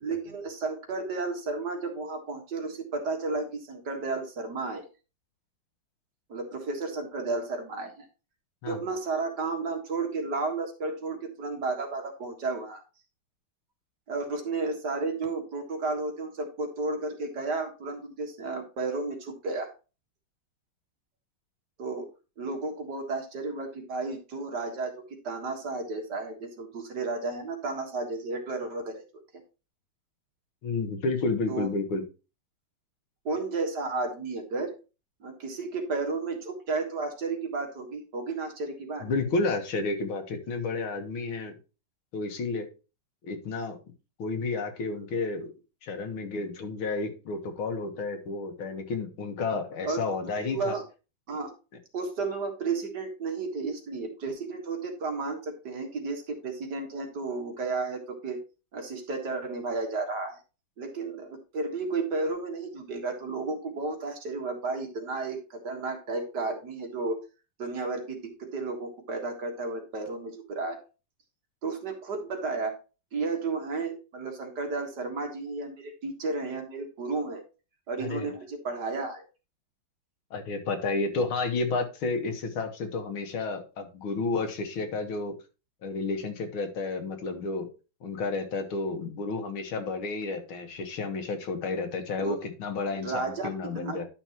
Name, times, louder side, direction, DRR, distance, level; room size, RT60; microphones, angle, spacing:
voice 1, 0.0-4.9 6.3-8.1 8.7-12.8 14.1-19.7 21.8-22.1 22.4-24.9 25.2-29.0 31.5-31.7 33.3-34.7 35.2-39.1 49.9-50.1 50.4-50.8 51.3-51.5 51.9-58.4 58.7-60.4 60.8-67.2 67.6-70.8 71.6-72.7 73.1-77.4 77.9-79.2 92.2-92.4 92.9-94.0, right 3 dB, 55° right, 3 dB, 2.2 m, -33 dB
voice 2, 30.6-32.0 39.0-41.6 42.1-42.7 43.3-43.8 44.2-45.5 45.8-50.8 78.0-78.3 80.3-85.3 85.8-87.7 88.0-94.1, left 3 dB, 85° left, 6 dB, 2.2 m, -31 dB
11.0 x 5.8 x 3.0 m, 0.31 s
omnidirectional pair, 2.2 m